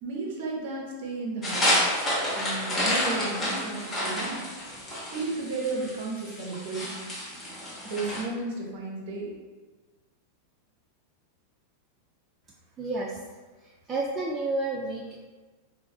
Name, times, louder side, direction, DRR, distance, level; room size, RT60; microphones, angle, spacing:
voice 1, 0.0-1.6 2.4-4.4 5.1-7.1 7.8-9.3, right 3 dB, 50° right, -1 dB, 0.7 m, -33 dB
sound 1, 1.4-8.2, equal, 15° left, 0.7 m, -29 dB
voice 2, 12.8-13.2 13.6-15.2, right 2 dB, 20° right, -2 dB, 0.3 m, -31 dB
4.1 x 2.0 x 2.3 m, 1.3 s
figure-of-eight pair, 90°, 0 cm